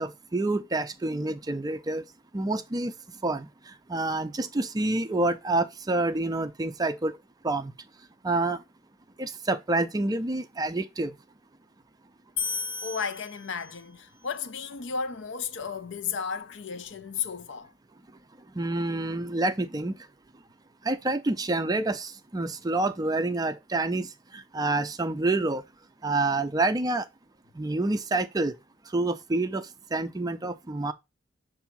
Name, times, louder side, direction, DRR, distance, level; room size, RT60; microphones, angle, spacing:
voice 1, 0.0-2.0 2.3-2.9 3.2-7.2 7.4-7.7 8.2-8.6 9.2-11.1 18.5-20.0 20.8-25.6 26.0-27.1 27.5-28.6 28.9-30.9, right 2 dB, 20° right, 0.4 m, -28 dB
sound 1, 12.4-14.0, left 5 dB, 80° left, 1.2 m, -34 dB
voice 2, 12.8-17.7, left 6 dB, 60° left, 0.5 m, -34 dB
7.0 x 2.7 x 5.7 m
head